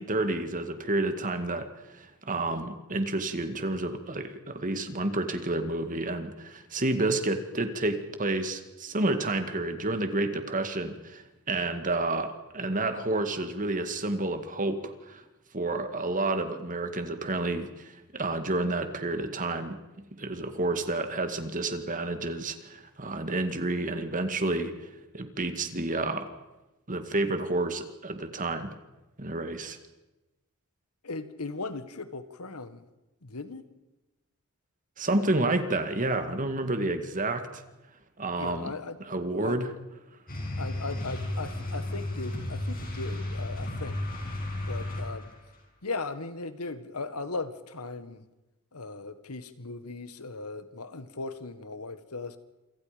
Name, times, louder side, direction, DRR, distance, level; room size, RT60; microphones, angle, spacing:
voice 1, 0.0-15.2 15.5-24.9 25.1-26.3 26.9-28.7 29.2-29.8 35.0-37.6 38.2-38.7 39.0-39.7, right 2 dB, 35° right, 8 dB, 2.1 m, -30 dB
voice 2, 31.0-32.8 33.2-33.7 38.4-39.0 39.4-39.6 40.6-44.0 44.7-45.3 45.8-48.2 48.7-52.4, left 3 dB, 85° left, 11 dB, 1.7 m, -38 dB
sound 1, 40.3-45.4, left 1 dB, 40° left, 6.3 m, -33 dB
27.5 x 26.0 x 5.2 m, 1.0 s
head